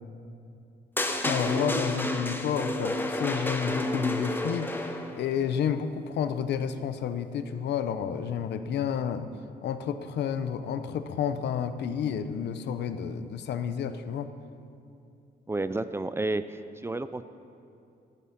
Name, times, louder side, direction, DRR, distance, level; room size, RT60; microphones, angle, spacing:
sound 1, 1.0-5.2, left 1 dB, 10° left, 1.0 m, -30 dB
voice 1, 1.2-9.3 9.6-14.3, left 8 dB, 85° left, 10 dB, 0.8 m, -30 dB
voice 2, 15.5-17.2, right 2 dB, 15° right, 12 dB, 0.4 m, -31 dB
17.0 x 10.5 x 5.9 m, 2.6 s
cardioid pair, 125°, 17 cm